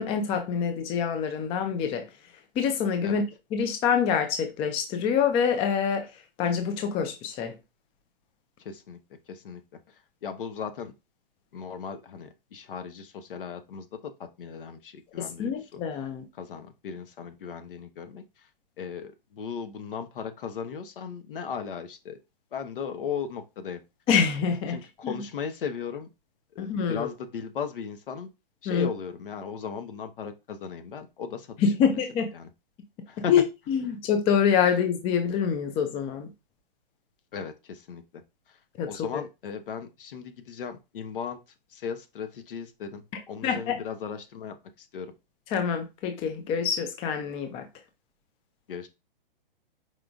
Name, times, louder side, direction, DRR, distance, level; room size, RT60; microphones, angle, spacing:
voice 1, 0.0-2.1 2.6-3.2 3.5-6.1 6.4-7.5 15.2-16.2 24.1-24.8 25.0-25.2 26.6-27.1 28.7-28.9 31.6-32.3 33.3-36.3 38.8-39.2 43.4-43.8 45.5-47.7, left 7 dB, 20° left, 0.5 m, -26 dB
voice 2, 8.6-9.0 9.3-9.6 9.9-10.9 11.5-15.8 16.3-18.5 18.8-22.2 22.5-23.8 24.7-26.1 26.5-28.3 28.6-31.5 31.8-32.0 32.3-32.5 33.1-33.3 37.3-38.2 38.5-38.6 38.9-41.4 41.7-45.1 48.7-48.9, left 6 dB, 65° left, 1.1 m, -37 dB
4.9 x 3.7 x 2.4 m
hypercardioid pair, 130°, 29 cm